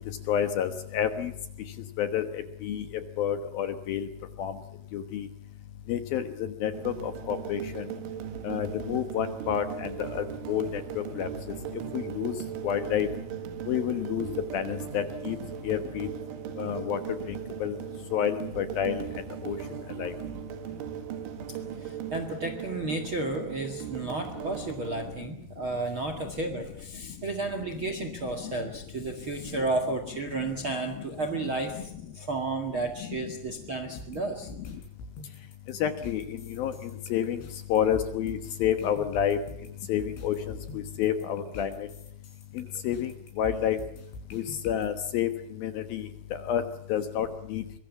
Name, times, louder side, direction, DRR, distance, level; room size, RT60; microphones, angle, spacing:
voice 1, 0.3-1.3 2.0-2.9 3.2-4.1 4.4-4.5 4.9-5.3 5.9-7.9 8.4-11.3 11.9-12.3 12.6-13.1 13.7-14.3 14.5-15.4 15.6-16.1 16.6-17.0 17.6-17.8 18.1-19.0 19.4-19.6 20.0-20.1 35.8-37.4 37.7-39.4 39.9-41.9 42.6-43.1 43.4-43.8 44.3-45.3 45.6-46.1 46.5-46.6 46.9-47.6, left 9 dB, 65° left, 9 dB, 2.6 m, -29 dB
sound 1, 6.7-25.1, right 10 dB, 90° right, 4.2 m, -38 dB
voice 2, 21.8-34.5, right 2 dB, 45° right, 7 dB, 1.7 m, -32 dB
sound 2, 34.0-44.9, left 2 dB, 90° left, 7.0 m, -45 dB
24.0 x 22.5 x 7.1 m, 0.70 s
omnidirectional pair, 5.3 m